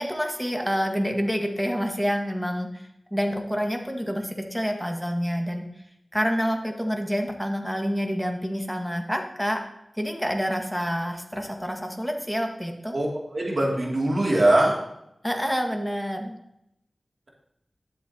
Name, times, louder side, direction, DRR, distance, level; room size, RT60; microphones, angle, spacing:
voice 1, 0.0-5.7 6.1-9.6 10.0-12.9 15.2-16.3, equal, ahead, 3 dB, 1.6 m, -28 dB
voice 2, 13.3-14.8, right 1 dB, 60° right, -2 dB, 2.5 m, -21 dB
12.0 x 7.9 x 2.9 m, 0.80 s
wide cardioid pair, 55°, 0 cm